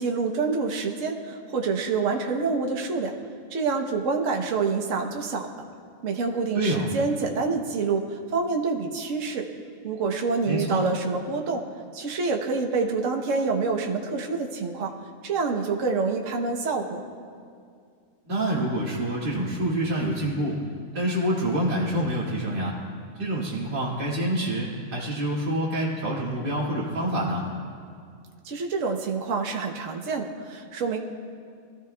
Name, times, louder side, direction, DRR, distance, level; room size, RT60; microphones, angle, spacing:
voice 1, 0.0-3.1 3.5-5.5 6.0-9.5 9.8-11.6 11.9-14.9 15.2-17.0 28.4-31.0, right 4 dB, 65° right, 2 dB, 1.3 m, -27 dB
voice 2, 6.5-6.9 10.5-10.8 18.3-20.6 20.9-22.8 23.2-27.4, right 1 dB, 40° right, -7 dB, 2.2 m, -27 dB
23.0 x 13.5 x 2.3 m, 2.2 s
omnidirectional pair, 1.5 m